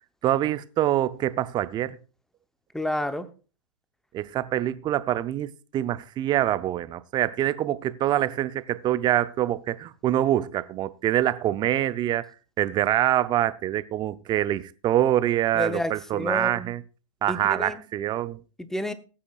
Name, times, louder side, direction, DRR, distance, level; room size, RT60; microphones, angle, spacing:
voice 1, 0.2-2.0 4.1-12.3 12.6-16.8 17.2-18.4, right 12 dB, 25° right, 0.6 m, -25 dB
voice 2, 2.7-3.3 15.5-16.7 17.3-17.9 18.6-18.9, left 1 dB, 5° left, 0.8 m, -30 dB
20.0 x 8.6 x 2.4 m
hypercardioid pair, 120°, 18 cm